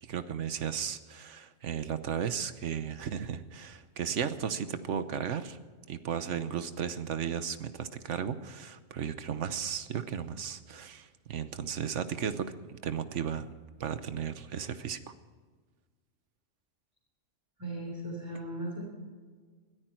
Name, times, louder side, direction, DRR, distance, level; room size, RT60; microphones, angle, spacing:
voice 1, 0.0-5.6 5.9-13.5 13.8-15.0, right 8 dB, 80° right, 11 dB, 1.2 m, -35 dB
voice 2, 17.6-18.8, right 1 dB, 15° right, -5 dB, 4.1 m, -37 dB
21.5 x 13.5 x 4.5 m, 1.5 s
omnidirectional pair, 1.2 m